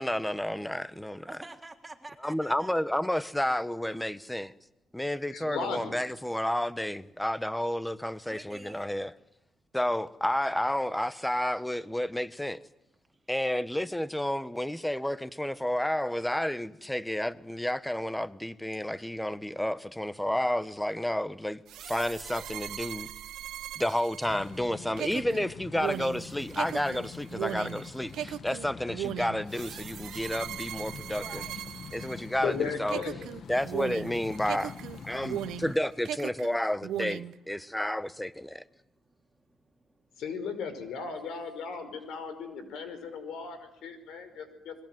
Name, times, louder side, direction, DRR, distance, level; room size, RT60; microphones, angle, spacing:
voice 1, 0.0-1.3 2.2-4.5 4.9-9.1 9.7-12.6 13.3-23.1 23.8-31.4 31.9-33.0 33.5-34.7 35.0-38.6, left 1 dB, 5° left, 1.2 m, -31 dB
voice 2, 1.3-2.7 8.2-8.9 13.1-13.3 14.4-14.5 18.7-18.8 23.3-23.5 31.2-31.6 37.6-37.7 38.8-40.1, right 2 dB, 15° right, 3.3 m, -49 dB
voice 3, 5.3-6.0 32.4-33.3 40.2-44.8, left 5 dB, 80° left, 5.4 m, -36 dB
sound 1, 21.7-32.5 32.9-35.8 36.0-37.4, right 11 dB, 80° right, 0.9 m, -38 dB
sound 2, 24.2-35.7, left 6 dB, 55° left, 1.6 m, -45 dB
27.0 x 21.0 x 9.3 m
cardioid pair, 90°, 0 cm